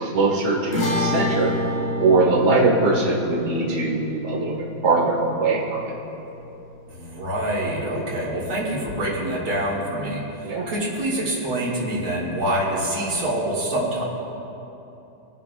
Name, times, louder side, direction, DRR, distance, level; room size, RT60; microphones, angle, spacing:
voice 1, 0.0-1.6 2.0-4.5 4.8-5.9 10.4-10.7, right 3 dB, 35° right, -4 dB, 1.9 m, -21 dB
sound 1, 0.7-7.2, left 1 dB, 50° left, 2.8 m, -29 dB
voice 2, 6.9-14.0, right 1 dB, 85° right, -6 dB, 3.2 m, -26 dB
25.0 x 9.4 x 2.5 m, 3.0 s
omnidirectional pair, 2.3 m